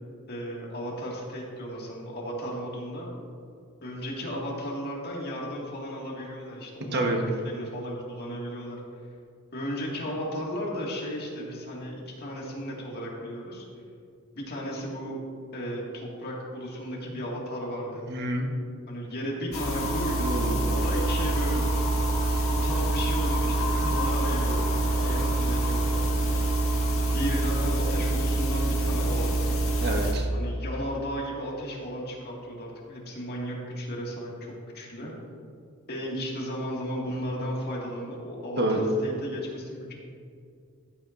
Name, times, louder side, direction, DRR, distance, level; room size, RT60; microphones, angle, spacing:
voice 1, 0.3-3.1 3.8-8.8 9.5-13.7 14.3-15.2 15.5-18.0 18.9-20.4 20.7-21.8 22.5-26.4 27.1-29.6 30.3-35.1 35.9-39.9, equal, 50° left, -3 dB, 2.0 m, -35 dB
voice 2, 18.1-18.5 20.2-20.6 22.3-22.4 23.8-23.9 29.8-30.3 37.1-37.4 38.6-38.8, right 1 dB, 50° right, 2 dB, 1.2 m, -29 dB
sound 1, 19.5-30.1, right 2 dB, 70° left, 1.8 m, -26 dB
14.5 x 8.6 x 2.6 m, 2.3 s
head